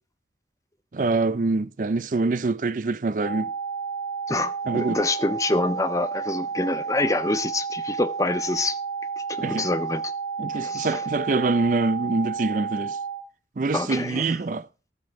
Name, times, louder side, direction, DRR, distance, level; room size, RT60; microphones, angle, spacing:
voice 1, 0.9-3.5 4.7-5.0 9.4-9.6 10.4-13.0 13.6-14.7, right 3 dB, 45° right, 0.4 m, -25 dB
sound 1, 3.2-13.2, right 5 dB, 5° left, 5.5 m, -31 dB
voice 2, 4.3-8.8 9.2-10.1 10.5-11.1 13.7-14.4, left 2 dB, 20° left, 0.5 m, -26 dB
12.5 x 7.7 x 5.1 m
head